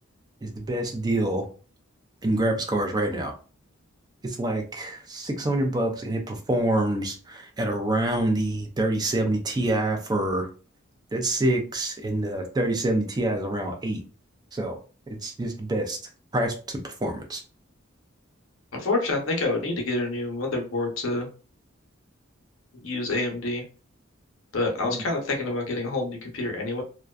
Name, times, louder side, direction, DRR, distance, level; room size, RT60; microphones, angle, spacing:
voice 1, 0.4-1.4 2.2-3.3 4.2-10.5 11.1-14.0 14.5-14.8 15.1-16.0 16.3-17.4 24.8-25.0, right 1 dB, 20° right, 3 dB, 0.4 m, -26 dB
voice 2, 18.8-21.3 22.8-23.6 24.5-26.8, left 2 dB, 70° left, 2 dB, 0.7 m, -27 dB
2.5 x 2.2 x 2.3 m, 0.37 s
head